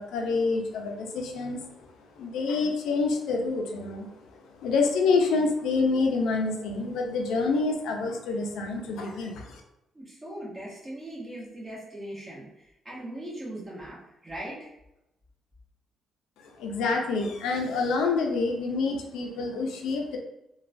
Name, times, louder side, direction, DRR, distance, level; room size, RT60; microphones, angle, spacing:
voice 1, 0.0-1.9 2.2-9.6 16.4-20.2, left 4 dB, 85° left, 2 dB, 0.4 m, -27 dB
voice 2, 9.9-14.7, right 1 dB, 20° right, -6 dB, 1.2 m, -40 dB
3.0 x 2.2 x 2.5 m, 0.87 s
cardioid pair, 90°, 0 cm